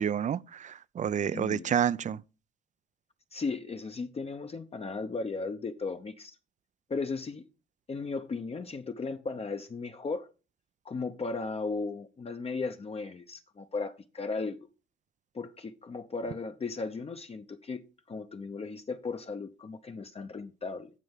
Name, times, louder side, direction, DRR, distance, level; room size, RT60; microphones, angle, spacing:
voice 1, 0.0-2.2, right 8 dB, 40° right, 0.4 m, -29 dB
voice 2, 1.3-1.7 3.3-6.3 6.9-7.4 7.9-10.3 10.8-14.6 15.3-20.9, left 4 dB, 30° left, 0.7 m, -36 dB
16.0 x 5.4 x 3.6 m
cardioid pair, 90°, 20 cm